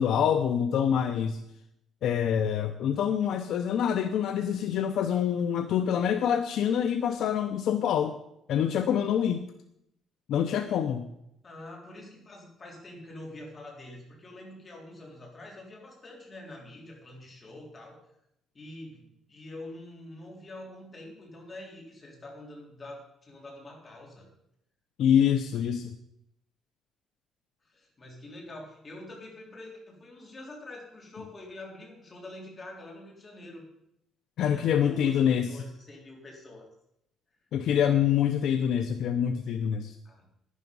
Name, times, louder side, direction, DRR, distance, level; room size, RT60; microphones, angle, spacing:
voice 1, 0.0-1.4 2.0-8.1 8.5-9.4 10.3-11.0 25.0-26.0 34.4-35.5 37.5-39.9, left 9 dB, 65° left, 9 dB, 0.7 m, -26 dB
voice 2, 11.4-18.0 18.5-24.3 27.6-33.6 34.4-36.6 40.0-40.3, left 1 dB, 25° left, -1 dB, 3.8 m, -45 dB
11.5 x 10.5 x 5.4 m, 0.80 s
cardioid pair, 150°, 0 cm